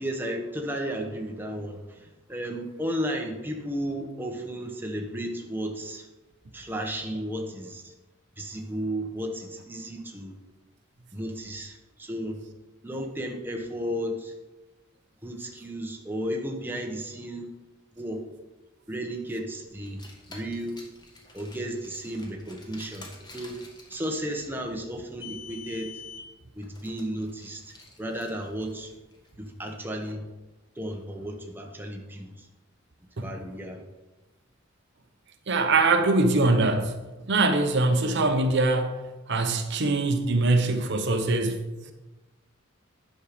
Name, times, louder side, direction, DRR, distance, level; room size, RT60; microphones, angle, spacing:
voice 1, 0.0-6.1 6.5-7.9 8.4-10.4 11.1-12.4 12.8-14.3 15.2-17.5 18.0-18.2 18.9-20.8 21.3-23.6 23.9-26.0 26.5-28.9 29.4-30.3 30.8-32.5 33.2-33.8, equal, 10° right, 1 dB, 1.0 m, -34 dB
Car, 19.8-29.3, left 3 dB, 20° left, 1.5 m, -47 dB
voice 2, 35.5-37.0 37.3-41.6, right 2 dB, 60° right, 6 dB, 0.9 m, -23 dB
9.7 x 6.5 x 5.1 m, 1.1 s
head